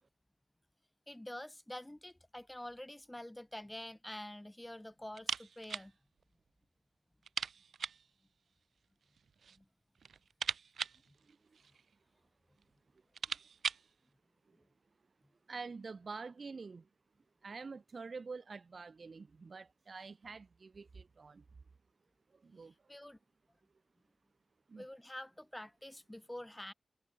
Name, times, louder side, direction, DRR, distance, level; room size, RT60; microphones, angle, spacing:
voice 1, 1.1-5.9 9.6-9.7 11.1-11.2 22.9-23.2 24.8-26.7, left 1 dB, 15° left, 7.4 m, -47 dB
sound 1, 5.1-5.9 6.2-6.3 6.6-6.7 7.2-8.1 9.0-9.6 9.9-11.9 12.6-12.7 13.0-13.9, right 6 dB, 90° right, 3.5 m, -40 dB
voice 2, 11.2-11.6 14.5-14.6 15.5-16.9 17.4-21.4 22.3-22.9 24.7-24.9, right 4 dB, 60° right, 7.1 m, -47 dB
cardioid pair, 50°, 0 cm